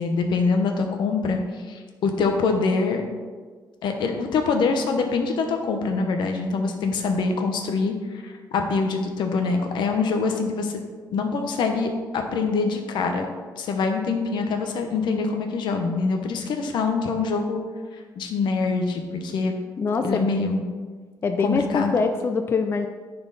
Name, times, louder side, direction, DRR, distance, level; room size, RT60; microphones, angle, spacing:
voice 1, 0.0-1.4 1.7-3.0 3.8-10.8 11.1-13.3 13.6-17.6 18.2-19.6 20.0-20.6 21.4-21.9, left 4 dB, 85° left, 4 dB, 1.0 m, -24 dB
voice 2, 19.8-20.5 21.2-22.9, left 4 dB, 30° left, 7 dB, 0.4 m, -24 dB
10.5 x 4.4 x 4.0 m, 1.5 s
cardioid pair, 155°, 8 cm